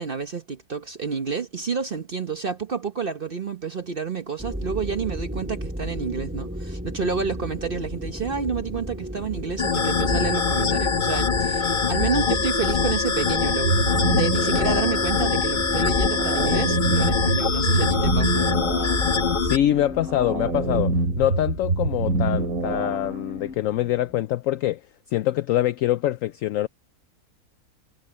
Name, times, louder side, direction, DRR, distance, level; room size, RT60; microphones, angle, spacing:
voice 1, 0.0-18.9, right 5 dB, 40° right, 1.0 m, -29 dB
sound 1, 4.4-24.2, equal, 5° right, 3.6 m, -36 dB
sound 2, 9.6-19.6, left 5 dB, 35° left, 1.2 m, -23 dB
sound 3, 13.6-23.5, right 2 dB, 65° right, 2.8 m, -26 dB
voice 2, 19.4-24.8 25.1-26.7, left 13 dB, 70° left, 0.8 m, -24 dB
omnidirectional pair, 1.7 m